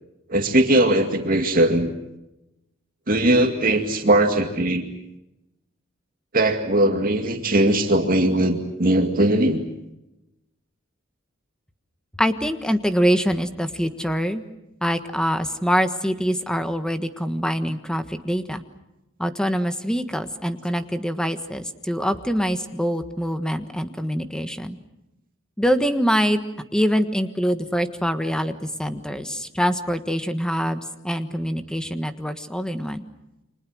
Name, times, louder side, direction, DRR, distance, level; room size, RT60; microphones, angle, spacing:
voice 1, 0.3-1.9 3.1-4.8 6.3-9.6, right 1 dB, 45° right, 4 dB, 2.3 m, -19 dB
voice 2, 12.2-14.4 14.8-18.6 19.2-24.8 25.6-26.4 26.7-33.0, equal, 5° left, 9 dB, 1.4 m, -24 dB
30.0 x 25.5 x 6.4 m, 0.92 s
head